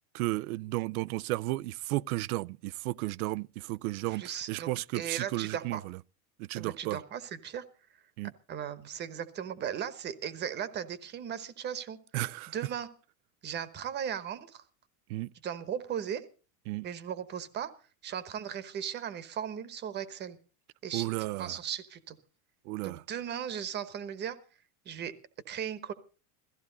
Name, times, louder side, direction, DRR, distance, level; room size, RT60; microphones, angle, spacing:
voice 1, 0.1-6.0 6.4-7.0 8.2-8.3 12.1-12.5 15.1-15.3 16.7-16.9 20.9-21.6 22.7-23.0, right 19 dB, 80° right, 0.6 m, -33 dB
voice 2, 4.1-4.7 4.9-5.8 6.5-7.6 8.5-12.0 12.5-12.9 13.4-14.6 15.4-16.2 16.8-17.7 18.0-20.4 20.8-21.1 21.4-22.2 22.8-24.4 24.8-25.1 25.5-25.9, right 8 dB, 25° right, 1.1 m, -37 dB
17.0 x 14.5 x 3.9 m
cardioid pair, 170°, 43 cm